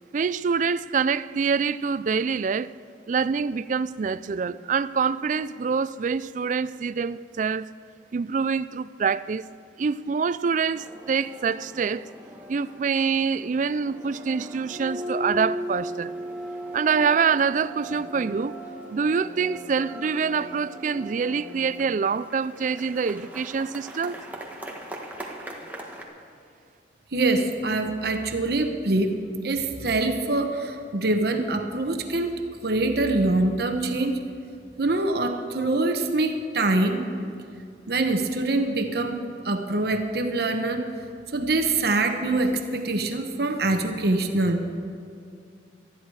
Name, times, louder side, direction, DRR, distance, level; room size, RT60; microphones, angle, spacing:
voice 1, 0.1-2.7 3.1-7.7 8.1-9.5 9.8-12.0 12.5-16.1 16.7-18.6 18.9-24.2, right 5 dB, 45° right, 0.3 m, -25 dB
sound 1, 10.7-26.0, equal, 10° right, 1.6 m, -38 dB
voice 2, 27.1-29.2 29.4-34.2 34.8-37.0 37.9-39.2 39.4-40.9 41.3-44.7, right 2 dB, 60° right, 1.0 m, -24 dB
19.0 x 13.0 x 4.8 m
head